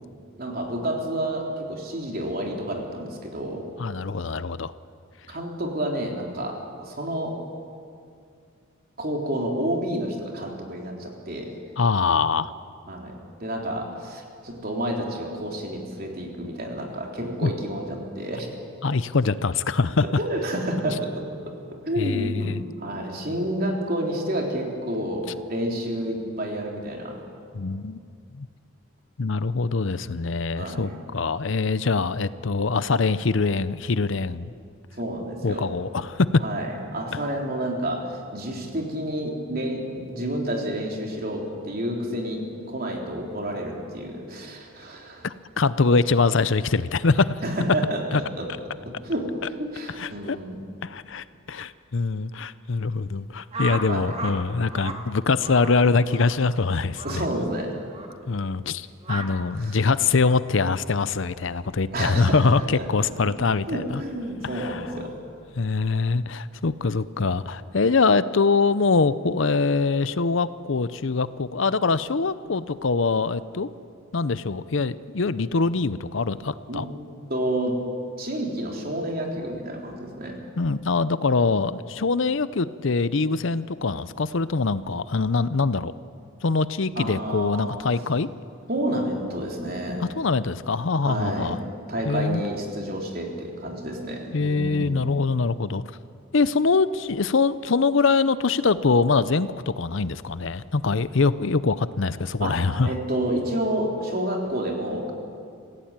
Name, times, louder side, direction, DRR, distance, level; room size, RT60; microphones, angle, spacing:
voice 1, 0.4-3.7 5.3-7.4 9.0-11.6 12.9-18.5 20.0-21.5 21.9-22.5 22.8-27.2 30.6-31.0 35.0-35.7 36.4-45.3 47.4-48.0 48.4-48.5 48.9-50.6 53.8-54.2 57.0-57.7 59.2-59.3 59.6-59.8 61.9-63.3 63.7-65.2 76.7-76.8 77.3-77.8 78.2-80.4 87.0-87.8 88.7-90.1 91.0-91.6 91.9-95.1 102.4-102.6 102.8-105.1, right 1 dB, 45° right, 1 dB, 3.6 m, -29 dB
voice 2, 3.8-4.7 11.8-12.5 17.4-17.5 18.8-20.0 22.0-22.6 27.5-28.0 28.3-28.5 29.2-34.5 35.4-36.3 45.2-47.3 48.1-48.2 50.0-50.4 50.8-57.2 58.3-64.0 64.5-64.8 65.6-73.7 74.1-76.9 80.6-85.9 86.4-88.3 90.0-91.6 92.0-92.4 94.3-95.8 96.3-102.9, left 4 dB, 65° left, 15 dB, 0.6 m, -23 dB
sound 1, 53.5-54.4 54.7-55.0 55.4-55.7 56.1-56.3 56.9-57.2 57.9-58.1 59.0-59.3, right 3 dB, 30° right, 1.9 m, -33 dB
26.0 x 16.0 x 8.9 m, 2.3 s
head